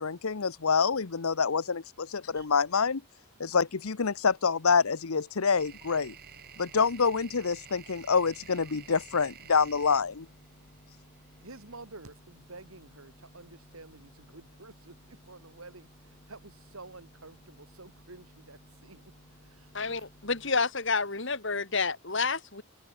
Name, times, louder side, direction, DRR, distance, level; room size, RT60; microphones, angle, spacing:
voice 1, 0.0-3.0 3.4-6.1 6.6-10.3, left 5 dB, 80° left, 0.9 m, -27 dB
sound 1, 2.3-2.5 4.6-11.6, right 7 dB, 45° right, 5.2 m, -50 dB
sound 2, 9.6-20.5, equal, 35° left, 7.6 m, -58 dB
voice 2, 11.4-15.9 16.3-19.0 19.5-19.9, right 3 dB, 75° right, 3.2 m, -50 dB
voice 3, 19.7-22.6, left 4 dB, 55° left, 2.3 m, -29 dB
head